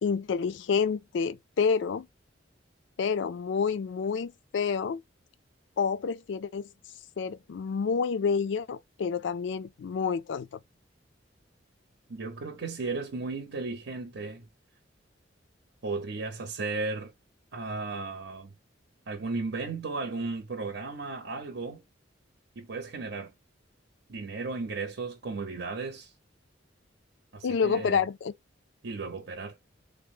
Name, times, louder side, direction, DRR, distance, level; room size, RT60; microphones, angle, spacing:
voice 1, 0.0-2.1 3.0-5.0 5.8-6.7 7.2-10.6 27.4-28.3, left 6 dB, 65° left, 0.3 m, -28 dB
voice 2, 12.1-14.5 15.8-17.1 17.5-18.5 19.1-21.8 22.6-23.3 24.1-26.1 27.3-28.0 28.8-29.6, right 3 dB, 65° right, 0.7 m, -35 dB
3.4 x 2.0 x 3.6 m
head